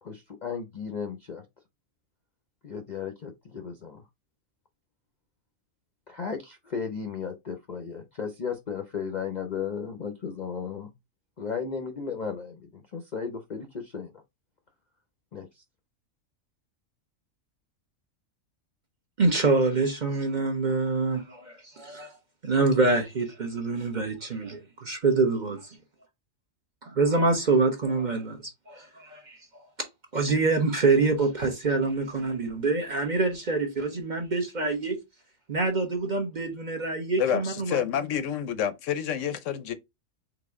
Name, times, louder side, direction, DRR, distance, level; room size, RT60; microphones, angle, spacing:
voice 1, 0.0-1.4 2.6-4.0 6.1-10.9 11.4-14.1 15.3-15.6, left 6 dB, 50° left, 0.6 m, -35 dB
voice 2, 19.2-22.1 22.4-25.8 26.8-28.4 28.7-29.4 29.8-29.9 30.1-35.0 35.5-37.8, right 3 dB, 40° right, 0.9 m, -26 dB
voice 3, 37.2-39.7, left 9 dB, 70° left, 0.9 m, -28 dB
4.0 x 3.1 x 3.5 m
omnidirectional pair, 1.4 m